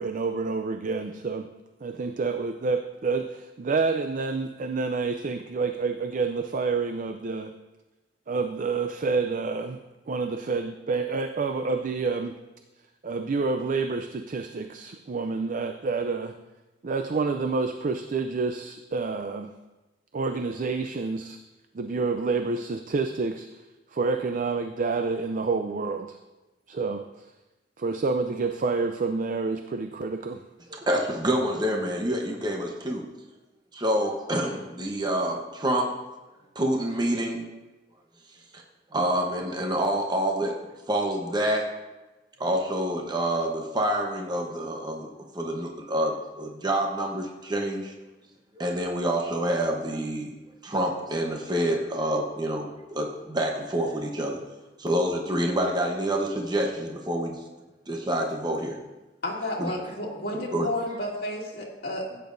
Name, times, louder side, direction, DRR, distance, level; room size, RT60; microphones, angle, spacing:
voice 1, 0.0-1.5 1.8-7.5 8.3-9.8 10.1-12.4 13.0-16.3 16.8-19.5 20.1-21.4 21.7-23.6 23.9-26.2 26.7-27.3 27.8-30.4, right 4 dB, 45° right, 7 dB, 0.4 m, -28 dB
voice 2, 30.7-33.0 33.7-35.9 36.5-37.4 38.5-38.6 38.9-41.7 42.4-47.9 48.5-50.3 50.6-54.4 54.8-57.4 57.9-58.8 59.6-59.7 60.5-60.7, right 1 dB, 25° right, 1 dB, 1.0 m, -27 dB
voice 3, 59.2-62.2, left 1 dB, 60° left, -3 dB, 2.3 m, -32 dB
15.5 x 8.9 x 2.6 m, 1.1 s
head